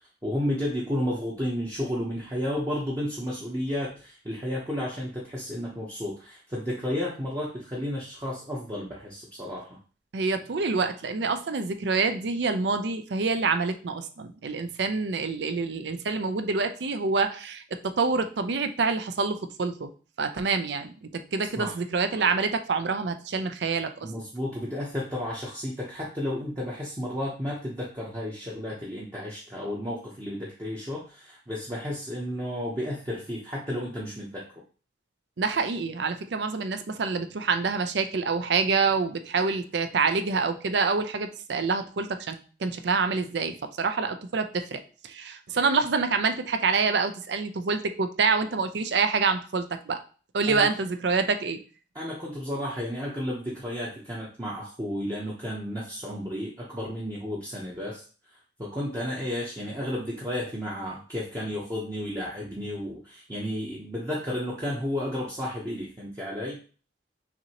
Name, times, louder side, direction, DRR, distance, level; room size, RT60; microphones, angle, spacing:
voice 1, 0.2-9.8 21.6-21.8 24.0-34.5 50.5-50.7 51.9-58.0 58.6-66.6, left 1 dB, 20° right, -5 dB, 0.7 m, -32 dB
voice 2, 10.1-19.9 20.2-23.9 35.4-50.0 50.3-51.6, right 4 dB, 70° right, 8 dB, 0.5 m, -27 dB
5.9 x 2.6 x 2.9 m, 0.38 s
head